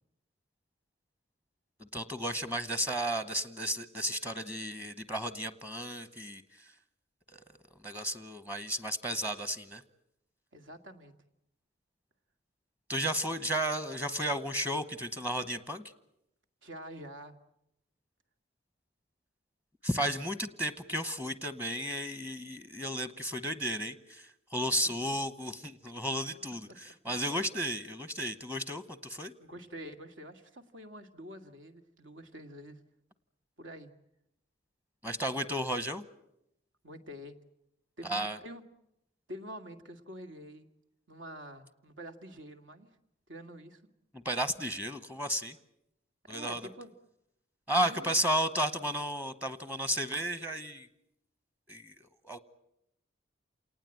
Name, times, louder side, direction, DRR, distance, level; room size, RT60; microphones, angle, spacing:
voice 1, 1.8-6.8 7.3-9.8 12.9-15.9 19.8-29.3 35.0-36.1 38.0-38.4 44.1-45.6 46.3-46.7 47.7-50.9 51.7-52.4, equal, 10° right, 12 dB, 1.0 m, -33 dB
voice 2, 10.5-11.1 16.6-17.3 29.4-32.8 33.6-33.9 36.8-37.4 38.0-38.7 39.3-40.7 41.1-42.9 43.3-43.8 46.3-46.9 47.8-48.1, equal, 75° right, 8 dB, 2.1 m, -46 dB
28.0 x 19.0 x 9.1 m, 0.83 s
head